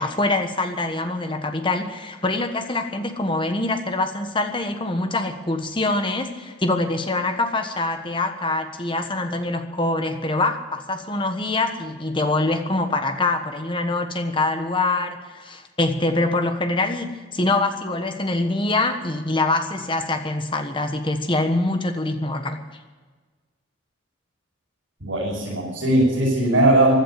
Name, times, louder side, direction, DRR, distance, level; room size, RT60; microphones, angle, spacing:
voice 1, 0.0-22.6, left 2 dB, 25° left, 7 dB, 1.3 m, -24 dB
voice 2, 25.0-26.9, right 1 dB, 80° right, -7 dB, 6.4 m, -19 dB
15.5 x 11.5 x 7.6 m, 1.4 s
head